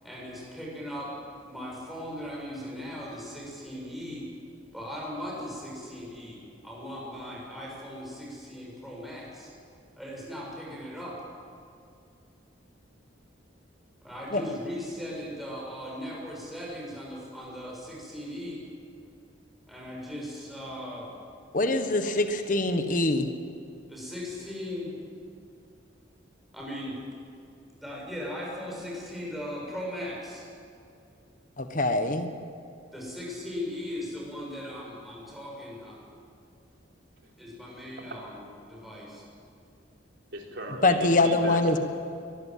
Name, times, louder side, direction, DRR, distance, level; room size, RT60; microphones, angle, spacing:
voice 1, 0.0-1.1 1.5-4.3 4.7-9.5 10.0-11.2 14.0-18.6 19.7-21.1 23.9-24.9 26.5-27.0 27.8-30.5 32.9-36.0 37.4-39.3, left 1 dB, ahead, -4 dB, 6.9 m, -38 dB
voice 2, 21.5-23.3 31.6-32.3 40.8-41.8, left 2 dB, 45° left, 7 dB, 1.4 m, -24 dB
voice 3, 40.3-41.8, right 1 dB, 65° right, 0 dB, 4.1 m, -37 dB
23.0 x 20.0 x 7.6 m, 2.5 s
head